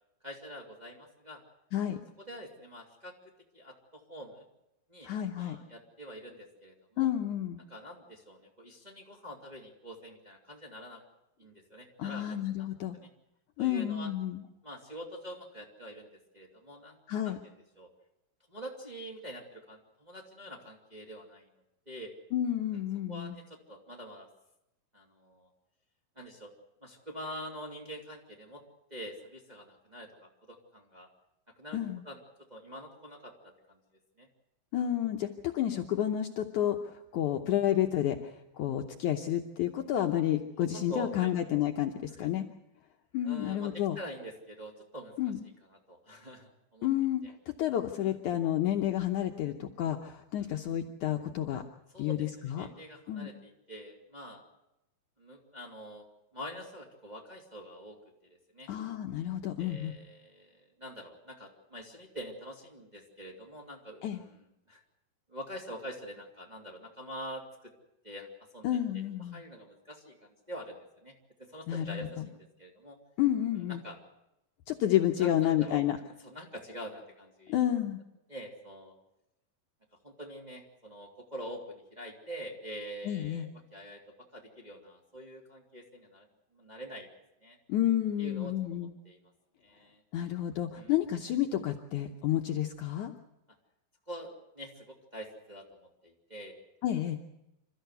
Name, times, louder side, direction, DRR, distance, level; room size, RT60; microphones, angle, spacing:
voice 1, 0.2-1.4 2.2-3.1 3.5-4.5 4.9-7.1 7.7-11.0 11.4-12.2 12.6-12.7 12.9-13.1 13.6-14.1 14.6-16.1 16.3-17.0 17.2-17.9 18.5-21.5 21.9-22.1 22.7-22.8 23.1-24.3 24.9-25.5 26.2-26.5 26.8-28.6 28.9-31.1 31.6-31.8 32.0-32.2 32.5-33.8 34.2-34.3 40.2-40.3 40.7-41.3 42.2-42.3 43.2-45.1 45.7-46.9 47.2-47.3 48.0-48.1 50.4-50.5 51.9-54.4 55.2-56.0 56.3-58.0 58.2-58.7 59.6-64.8 65.3-67.7 68.0-68.3 68.5-68.7 68.9-69.0 69.3-71.1 71.4-73.0 73.5-74.0 75.2-75.8 76.2-77.6 78.3-78.9 80.0-84.0 84.3-86.3 86.5-87.1 87.4-87.6 88.2-89.2 89.6-90.0 90.7-90.9 94.1-96.6, equal, 15° right, -1 dB, 2.0 m, -45 dB
voice 2, 5.0-5.6 7.0-7.6 12.0-13.0 13.6-14.4 17.1-17.4 22.3-23.4 31.7-32.0 34.7-42.4 43.1-44.0 45.2-45.4 46.8-51.6 52.0-52.7 53.1-53.3 58.7-59.9 64.0-64.2 68.6-69.4 71.7-72.3 73.2-73.8 74.7-76.0 77.5-78.0 83.1-83.5 87.7-88.9 90.1-93.1 96.8-97.2, left 11 dB, 70° left, 4 dB, 2.0 m, -30 dB
27.0 x 14.0 x 8.0 m, 0.88 s
omnidirectional pair, 4.3 m